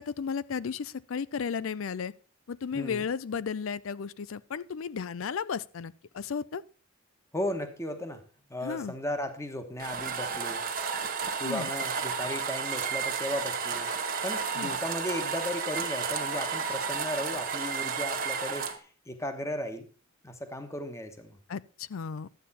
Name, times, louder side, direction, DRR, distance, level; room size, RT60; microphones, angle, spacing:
voice 1, 0.0-2.1 2.5-6.6 8.6-8.9 11.4-11.7 14.6-14.7 21.5-22.3, left 6 dB, 70° left, 0.5 m, -34 dB
voice 2, 2.7-3.0 7.3-8.2 8.5-10.6 11.4-13.9 14.2-19.9 20.2-21.4, left 1 dB, 15° left, 1.2 m, -35 dB
sound 1, 9.8-18.7, right 5 dB, 45° right, 1.4 m, -32 dB
12.0 x 8.5 x 4.2 m
head